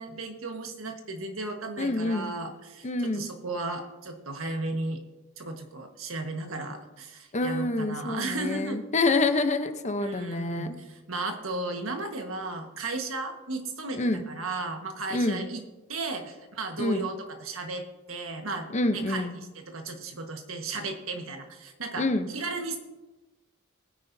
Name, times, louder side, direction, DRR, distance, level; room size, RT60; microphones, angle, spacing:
voice 1, 0.0-5.0 5.4-8.8 10.0-14.0 14.3-15.6 15.9-22.8, right 3 dB, 85° right, 5 dB, 1.5 m, -35 dB
voice 2, 1.8-2.3 2.8-3.3 7.3-10.8 13.9-14.2 15.1-15.5 16.8-17.1 18.7-19.4 22.0-22.3, left 2 dB, 35° left, 8 dB, 0.8 m, -27 dB
20.5 x 9.8 x 2.7 m, 1.1 s
head